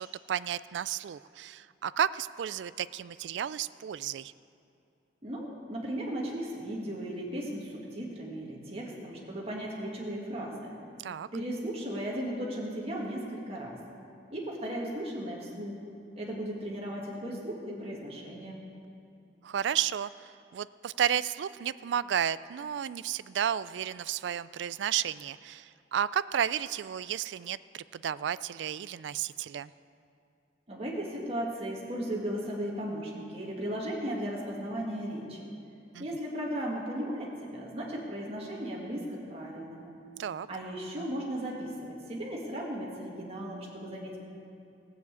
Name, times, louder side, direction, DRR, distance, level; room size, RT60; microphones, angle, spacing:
voice 1, 0.0-4.3 11.0-11.3 19.4-20.1 20.5-29.7 35.9-36.1 40.2-40.5, right 9 dB, 75° right, 17 dB, 0.3 m, -32 dB
voice 2, 5.2-10.7 11.3-13.8 14.3-15.8 16.2-18.6 30.7-35.5 36.0-39.9 40.5-44.2, equal, 35° right, -3 dB, 1.9 m, -36 dB
16.0 x 7.1 x 8.2 m, 2.6 s
head